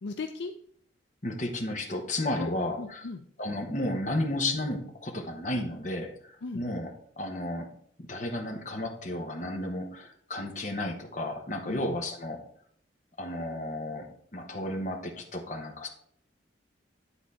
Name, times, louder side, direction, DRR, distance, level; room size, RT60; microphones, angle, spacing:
voice 1, 0.0-0.5 2.4-2.5 2.8-3.3 6.4-6.6 11.7-11.9, left 3 dB, 65° left, 5 dB, 0.5 m, -36 dB
voice 2, 1.2-3.0 3.4-6.9 7.2-7.7 8.0-12.4 13.2-14.1 14.3-15.9, left 1 dB, 40° left, 3 dB, 1.1 m, -33 dB
9.9 x 4.0 x 4.2 m, 0.63 s
head